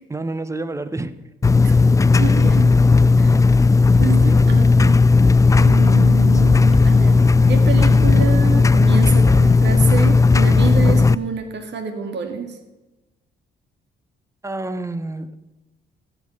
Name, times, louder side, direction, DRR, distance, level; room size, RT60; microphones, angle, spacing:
voice 1, 0.1-1.2 2.2-2.4 4.2-4.7 14.4-15.4, right 2 dB, 15° right, 0.9 m, -29 dB
sound 1, 1.4-11.1, left 4 dB, 15° left, 0.3 m, -14 dB
voice 2, 2.2-2.7 3.2-3.4 4.0-4.9 5.6-12.6, right 6 dB, 60° right, 2.1 m, -27 dB
sound 2, 4.8-6.2 6.5-6.9 7.1-7.7 8.1-9.0 9.5-9.6 10.5-10.6, left 5 dB, 30° left, 1.0 m, -27 dB
14.0 x 5.6 x 9.2 m
cardioid pair, 90°, 20 cm